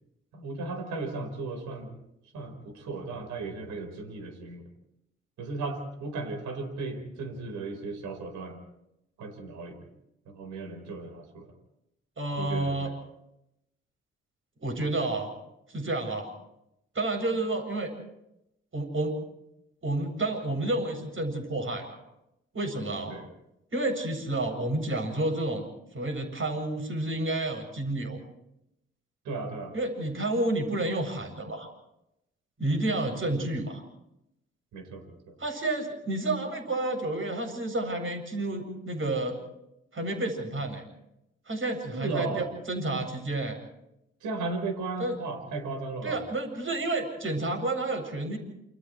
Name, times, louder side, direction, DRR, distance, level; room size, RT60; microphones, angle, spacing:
voice 1, 0.3-1.9 2.3-4.6 5.4-8.6 9.2-9.8 10.2-11.5 12.4-12.9 23.1-23.3 29.2-29.7 34.7-35.4 41.9-42.5 44.2-46.2, right 3 dB, 75° right, 4 dB, 4.7 m, -35 dB
voice 2, 12.2-12.9 14.6-15.3 15.7-16.3 16.9-17.9 18.7-19.1 19.8-22.0 22.5-23.1 23.7-25.6 25.9-28.2 29.7-31.7 32.6-33.8 35.4-39.4 39.9-40.8 41.5-43.6 45.0-45.1 46.0-48.4, right 2 dB, 45° right, 4 dB, 8.0 m, -30 dB
29.0 x 28.5 x 3.3 m, 0.83 s
hypercardioid pair, 40°, 29 cm